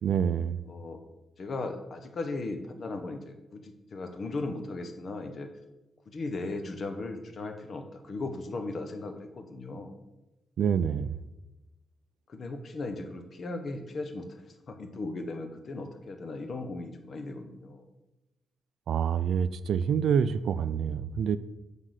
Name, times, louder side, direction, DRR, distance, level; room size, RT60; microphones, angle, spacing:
voice 1, 0.0-0.6 10.6-11.1 18.9-21.4, right 7 dB, 75° right, 14 dB, 0.3 m, -27 dB
voice 2, 0.6-1.0 1.4-5.5 6.1-10.0 12.3-17.9, left 2 dB, 50° left, 6 dB, 1.0 m, -37 dB
7.5 x 3.8 x 6.5 m, 1.0 s
cardioid pair, 90°, 0 cm